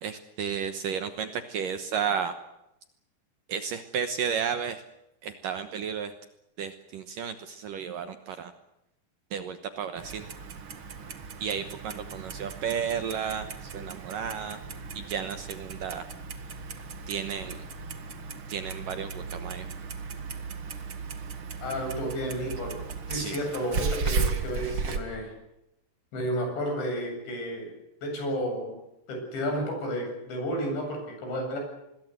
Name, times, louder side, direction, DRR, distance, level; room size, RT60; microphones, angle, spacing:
voice 1, 0.0-2.3 3.5-4.8 5.2-6.1 6.6-8.5 9.3-10.3 11.4-14.6 14.9-16.0 17.1-17.6 18.5-19.7 23.1-23.4, right 7 dB, 70° right, 9 dB, 2.2 m, -33 dB
Clock, 10.0-25.0, right 5 dB, 50° right, 1.5 m, -36 dB
voice 2, 21.6-22.8 23.1-25.3 26.1-27.7 28.0-28.7 29.1-31.6, equal, 80° left, 3 dB, 10.0 m, -32 dB
25.5 x 21.5 x 8.0 m, 0.85 s
omnidirectional pair, 5.1 m